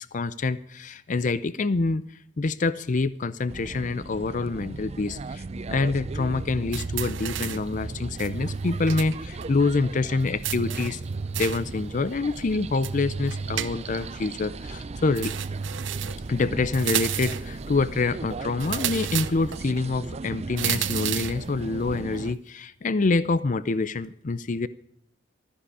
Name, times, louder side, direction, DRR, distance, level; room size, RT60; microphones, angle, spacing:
voice 1, 0.0-2.1 2.4-11.0 11.3-15.3 16.3-24.7, left 3 dB, 40° left, 0.5 m, -26 dB
sound 1, 3.5-22.4, right 3 dB, 35° right, 0.5 m, -37 dB
sound 2, 6.7-7.7 8.2-9.2 9.4-9.5 10.4-11.7 12.8-14.1 15.2-16.3 16.7-17.5 18.6-19.6 20.6-21.4, right 8 dB, 75° right, 0.8 m, -31 dB
15.5 x 13.5 x 4.9 m
head